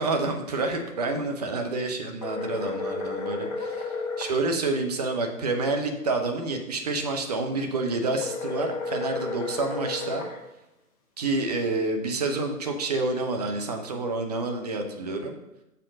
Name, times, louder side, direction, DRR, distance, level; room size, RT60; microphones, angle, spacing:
voice 1, 0.0-10.3 11.2-15.4, right 3 dB, 25° right, 4 dB, 0.6 m, -28 dB
sound 1, 2.2-4.4 8.2-10.4, left 3 dB, 25° left, 0.7 m, -32 dB
6.6 x 3.7 x 6.3 m, 0.93 s
figure-of-eight pair, 135°, 46 cm